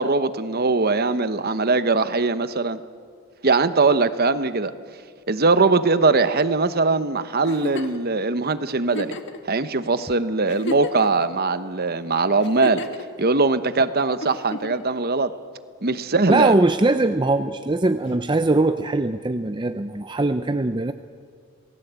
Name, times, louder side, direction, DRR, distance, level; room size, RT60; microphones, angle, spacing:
voice 1, 0.0-2.8 3.4-4.7 5.3-9.2 9.4-12.9 13.2-15.3 15.8-16.5, right 3 dB, 45° right, 12 dB, 1.0 m, -21 dB
Giggle, 7.4-8.0 8.9-9.4 10.0-10.1 10.5-11.2 12.4-13.0 14.2-14.9 16.1-16.6 18.1-18.2, left 1 dB, 55° left, 1.6 m, -32 dB
voice 2, 16.3-20.9, right 2 dB, 20° right, 9 dB, 0.5 m, -21 dB
27.5 x 19.5 x 8.2 m, 2.1 s
head